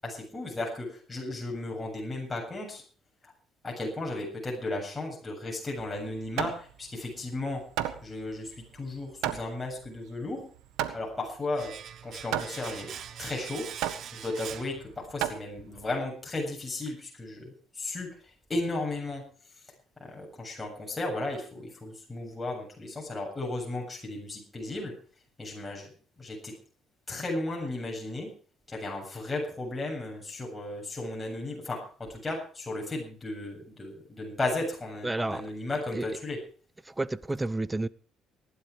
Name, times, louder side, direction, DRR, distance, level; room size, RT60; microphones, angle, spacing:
voice 1, 0.0-2.8 3.2-3.3 3.6-7.6 8.0-10.5 10.9-11.8 12.0-12.9 13.2-13.7 14.1-19.2 20.0-24.9 25.4-25.9 26.2-26.5 27.1-28.3 28.7-36.4, left 2 dB, 20° left, 7.7 m, -35 dB
Hammer, 5.8-16.0, right 12 dB, 85° right, 1.5 m, -36 dB
Domestic sounds home sounds, 11.6-15.4 15.6-15.8, right 9 dB, 60° right, 1.3 m, -43 dB
voice 2, 35.0-35.4 35.9-36.0 37.0-37.9, right 2 dB, 15° right, 0.8 m, -30 dB
18.5 x 11.5 x 5.1 m
cardioid pair, 85°, 0 cm